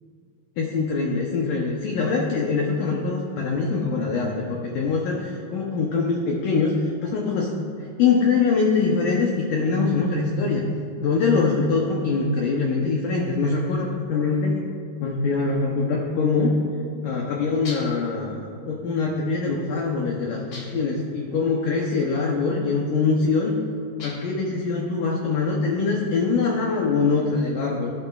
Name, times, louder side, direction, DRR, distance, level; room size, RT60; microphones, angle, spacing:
voice 1, 0.6-7.5 8.0-10.7 11.0-14.6 15.0-16.6 17.0-23.6 24.0-27.9, left 4 dB, 90° left, -1 dB, 1.8 m, -23 dB
sound 1, 17.6-18.1 20.5-21.0 24.0-24.4, left 2 dB, 55° left, 1.2 m, -40 dB
16.5 x 12.0 x 2.4 m, 2.3 s
omnidirectional pair, 4.9 m